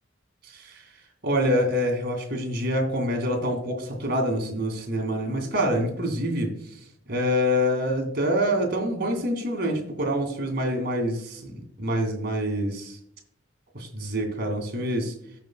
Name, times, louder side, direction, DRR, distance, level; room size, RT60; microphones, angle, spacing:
voice 1, 1.2-6.5 7.1-13.0 13.7-15.1, equal, 55° right, 2 dB, 2.4 m, -26 dB
17.5 x 5.8 x 2.3 m, 0.70 s
head